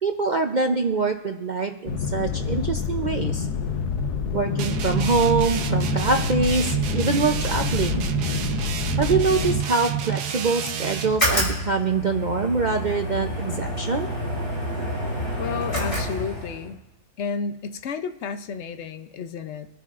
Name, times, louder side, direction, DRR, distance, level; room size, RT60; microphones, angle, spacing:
voice 1, 0.0-3.5 4.3-8.1 9.0-14.1, right 4 dB, 70° right, 4 dB, 0.4 m, -24 dB
sound 1, 1.9-9.6, left 6 dB, 85° left, 1.4 m, -27 dB
sound 2, 4.6-11.2, right 9 dB, 85° right, 1.3 m, -28 dB
sound 3, 11.0-16.7, equal, 30° left, 4.4 m, -28 dB
voice 2, 15.4-16.8 17.2-19.7, left 5 dB, 60° left, 9 dB, 0.8 m, -31 dB
25.5 x 9.9 x 2.5 m, 1.1 s
omnidirectional pair, 1.7 m